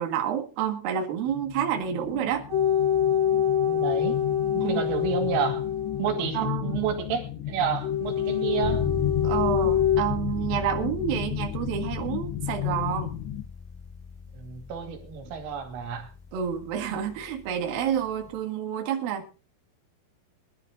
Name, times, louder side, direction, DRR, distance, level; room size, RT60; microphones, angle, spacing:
voice 1, 0.0-2.5 4.6-4.8 6.3-6.8 9.2-13.2 16.3-19.3, right 8 dB, 60° right, 1 dB, 3.0 m, -29 dB
sound 1, 1.3-13.4, left 12 dB, 75° left, 2.9 m, -34 dB
sound 2, 2.5-6.5 7.8-10.0, left 9 dB, 5° right, 5.4 m, -25 dB
voice 2, 3.7-4.2 4.5-5.7 6.0-8.9 14.3-16.1, right 8 dB, 85° right, 5 dB, 4.8 m, -30 dB
sound 3, 8.6-18.4, left 4 dB, 20° left, 1.2 m, -37 dB
24.0 x 12.0 x 2.5 m, 0.34 s
omnidirectional pair, 5.7 m